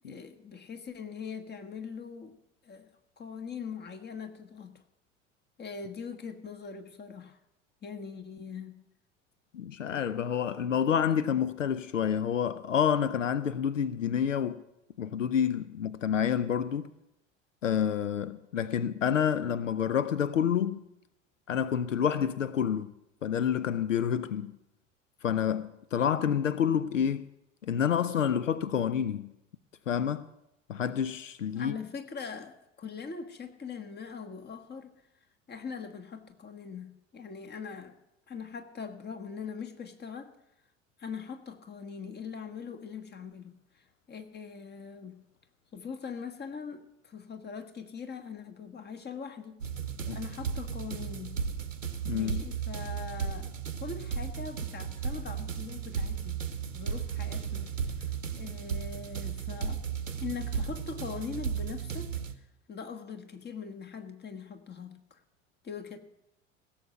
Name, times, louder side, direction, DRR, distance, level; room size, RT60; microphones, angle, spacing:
voice 1, 0.1-2.3 2.6-2.9 3.2-4.8 5.6-7.4 7.8-8.8 31.5-34.9 35.5-38.0 38.3-40.3 41.0-45.2 45.7-49.6 50.1-51.3 52.1-56.4 56.7-57.7 58.3-59.8 60.2-62.1 62.7-65.2 65.6-66.0, left 6 dB, 25° left, 1.5 m, -41 dB
voice 2, 9.5-14.6 15.0-16.9 17.6-20.8 21.5-22.9 23.2-24.6 25.2-27.3 27.6-29.3 29.9-30.3 30.7-31.8 50.1-50.2 52.0-52.4, left 8 dB, 85° left, 0.5 m, -28 dB
sound 1, 49.6-62.3, right 7 dB, 90° right, 0.8 m, -35 dB
16.5 x 7.3 x 6.7 m
figure-of-eight pair, 70°, 37 cm